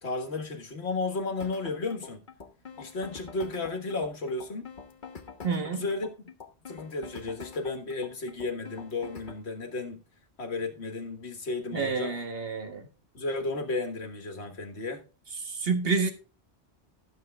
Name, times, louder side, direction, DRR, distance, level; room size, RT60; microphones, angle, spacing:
voice 1, 0.0-2.2 2.8-4.7 5.7-6.1 6.7-10.0 10.4-12.2 13.1-15.1, left 3 dB, 65° left, 1.8 m, -33 dB
sound 1, 1.4-9.4, left 5 dB, 45° left, 1.3 m, -45 dB
voice 2, 5.4-5.8 11.7-12.9 15.4-16.1, right 5 dB, 55° right, 1.6 m, -29 dB
12.0 x 7.2 x 3.5 m
omnidirectional pair, 1.2 m